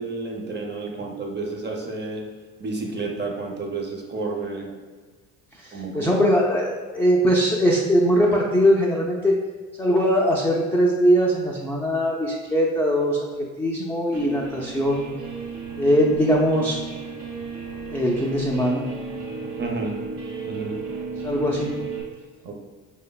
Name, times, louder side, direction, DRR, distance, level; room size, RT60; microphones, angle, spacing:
voice 1, 0.0-2.3 2.6-4.8 5.7-6.2 19.6-20.0 20.4-20.8 22.4-22.5, right 3 dB, 25° right, 1 dB, 0.6 m, -31 dB
voice 2, 5.6-9.3 9.8-13.2 13.6-15.1 15.8-16.8 17.9-18.8 21.2-21.8, equal, 5° left, -4 dB, 0.3 m, -21 dB
Guitar, 14.1-22.0, right 4 dB, 75° right, 0.7 m, -34 dB
4.8 x 2.1 x 2.3 m, 1.4 s
hypercardioid pair, 60°, 39 cm